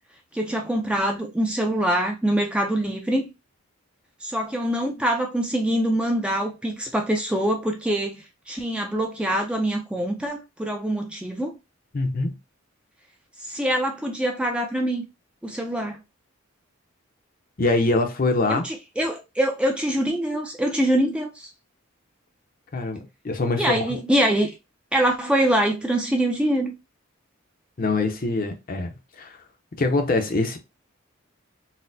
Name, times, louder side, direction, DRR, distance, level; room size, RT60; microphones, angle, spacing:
voice 1, 0.3-3.3 4.2-11.6 13.4-15.0 15.4-16.0 18.5-21.5 23.6-24.5 24.9-26.7, right 1 dB, 5° right, 0.4 m, -24 dB
voice 2, 11.9-12.3 17.6-18.7 22.7-24.0 27.8-28.9 29.2-29.4 29.8-30.6, left 2 dB, 40° left, 0.6 m, -24 dB
4.0 x 2.0 x 2.6 m
head